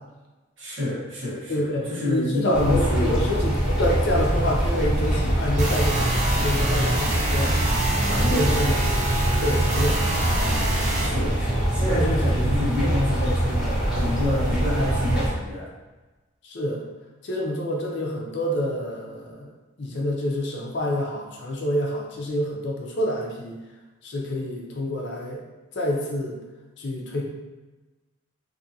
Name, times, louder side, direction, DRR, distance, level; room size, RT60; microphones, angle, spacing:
voice 1, 0.6-3.3 8.0-8.5 10.9-15.7, left 1 dB, 70° right, -7 dB, 1.1 m, -28 dB
voice 2, 1.5-6.1 6.4-7.6 8.3-8.8 9.4-10.0 11.8-12.4 16.4-16.8 17.2-19.5 19.8-23.6 24.0-25.4 25.7-26.4 26.8-27.2, left 1 dB, 55° left, -2 dB, 0.5 m, -27 dB
sound 1, 2.5-15.3, right 1 dB, 5° right, 1.0 m, -24 dB
sound 2, 5.6-11.1, right 2 dB, 35° right, 0.5 m, -27 dB
2.7 x 2.5 x 2.7 m, 1.2 s
head